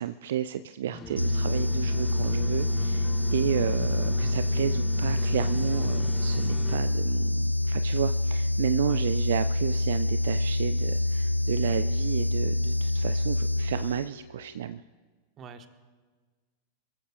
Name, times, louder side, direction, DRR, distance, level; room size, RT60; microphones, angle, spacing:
voice 1, 0.0-14.8, right 10 dB, 60° right, 13 dB, 0.4 m, -32 dB
sound 1, 0.9-6.8, equal, 20° left, 3.2 m, -39 dB
sound 2, 1.2-14.3, left 1 dB, 90° left, 0.3 m, -26 dB
voice 2, 1.2-1.5 8.8-9.0 15.4-15.7, right 5 dB, 30° right, 8 dB, 1.3 m, -46 dB
26.0 x 15.0 x 2.4 m, 1.4 s
figure-of-eight pair, 90°, 0 cm